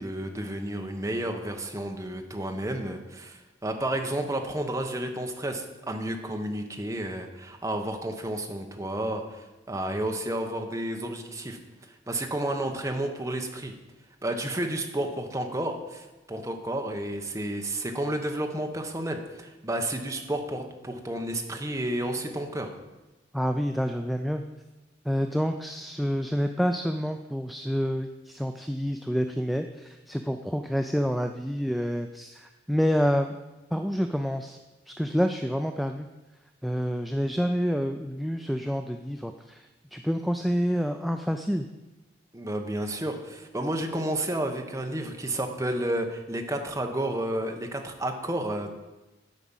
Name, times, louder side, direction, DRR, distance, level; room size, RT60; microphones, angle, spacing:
voice 1, 0.0-11.6 11.9-13.7 14.2-22.7 42.3-48.8, right 1 dB, 15° right, 4 dB, 1.0 m, -31 dB
voice 2, 23.3-24.4 25.1-33.3 33.7-34.6 34.9-36.1 36.6-41.7, equal, ahead, 5 dB, 0.3 m, -28 dB
11.0 x 5.0 x 7.2 m, 1.1 s
head